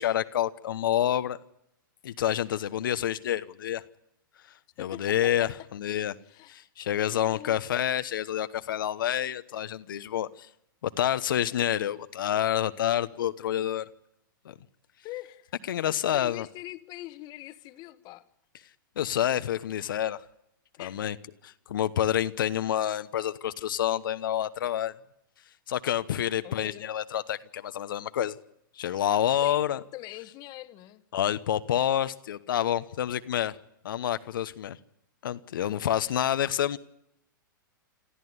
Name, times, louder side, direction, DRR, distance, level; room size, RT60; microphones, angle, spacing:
voice 1, 0.0-1.4 2.0-3.8 4.8-6.2 6.5-10.5 10.8-13.9 14.4-14.5 15.7-16.5 19.0-20.2 20.8-21.2 21.4-24.9 25.7-28.4 28.7-29.8 31.1-33.6 33.8-34.8 35.2-36.8, left 11 dB, 70° left, 1.0 m, -28 dB
voice 2, 4.8-5.5 6.2-6.6 7.1-7.6 15.0-15.5 16.1-18.3 20.8-21.1 26.4-26.8 29.4-29.6 29.9-31.0 35.6-35.9, left 17 dB, 35° left, 1.4 m, -43 dB
26.5 x 14.5 x 9.5 m
hypercardioid pair, 125°, 11 cm